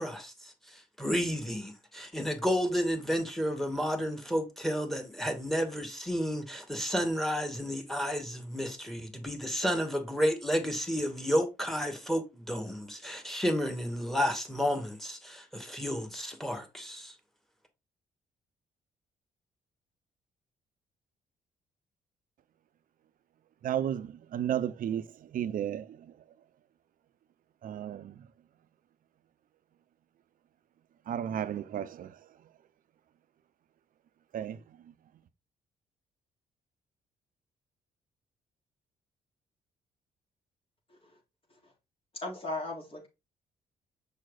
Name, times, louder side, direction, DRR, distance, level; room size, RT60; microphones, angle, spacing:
voice 1, 0.0-17.2, equal, ahead, 2.5 m, -31 dB
voice 2, 23.6-26.1 27.6-28.2 31.1-32.1 34.3-34.6, right 10 dB, 60° right, 0.7 m, -33 dB
voice 3, 42.1-43.1, left 2 dB, 35° left, 4.2 m, -36 dB
6.3 x 5.5 x 4.1 m
hypercardioid pair, 50°, 16 cm